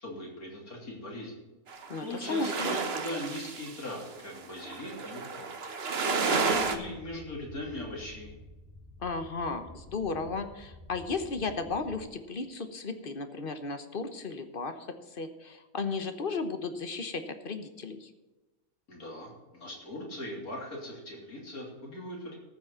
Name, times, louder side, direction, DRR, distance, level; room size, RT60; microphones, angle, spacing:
voice 1, 0.0-1.4 2.0-5.5 6.1-8.3 18.9-22.4, left 1 dB, 85° left, -1 dB, 3.6 m, -39 dB
sound 1, 1.7-6.8, right 5 dB, 50° right, 1.2 m, -32 dB
voice 2, 1.9-2.8 9.0-18.1, left 4 dB, 40° left, 8 dB, 1.2 m, -35 dB
sound 2, 6.5-12.1, left 1 dB, 5° right, 2.0 m, -50 dB
14.0 x 6.3 x 7.4 m, 1.1 s
omnidirectional pair, 1.5 m